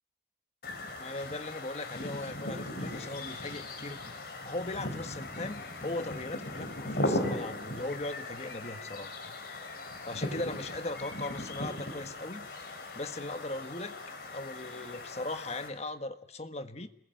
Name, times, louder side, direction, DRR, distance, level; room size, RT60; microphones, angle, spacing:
sound 1, 0.6-15.7, left 1 dB, 55° left, 5.1 m, -38 dB
voice 1, 1.0-4.2 4.4-9.4 10.0-12.5 12.9-13.9 14.3-16.9, left 2 dB, 35° left, 8 dB, 1.5 m, -38 dB
29.5 x 21.0 x 9.2 m, 0.78 s
head